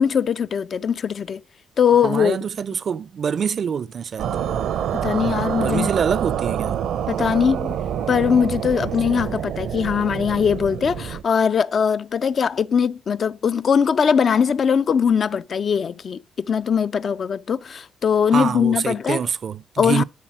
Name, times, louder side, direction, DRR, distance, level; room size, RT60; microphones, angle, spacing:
voice 1, 0.0-1.4 1.8-2.4 4.9-5.9 7.1-7.8 8.1-19.2 19.8-20.0, left 7 dB, 50° left, 0.4 m, -21 dB
voice 2, 2.0-4.3 5.6-6.8 18.3-20.0, right 7 dB, 50° right, 0.5 m, -25 dB
sound 1, 4.2-11.2, right 9 dB, 80° right, 0.8 m, -26 dB
12.0 x 4.0 x 6.1 m
cardioid pair, 90°, 0 cm